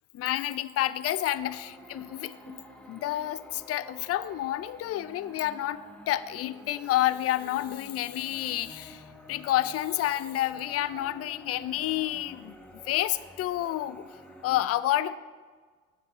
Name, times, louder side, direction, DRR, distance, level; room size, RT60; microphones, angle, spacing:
voice 1, 0.1-2.6 2.9-9.0 9.3-12.5 12.9-14.1 14.4-15.2, left 13 dB, 45° left, 16 dB, 0.5 m, -29 dB
sound 1, 1.0-14.6, equal, 5° left, 1.4 m, -50 dB
7.3 x 5.8 x 7.6 m, 1.5 s
hypercardioid pair, 65°, 35 cm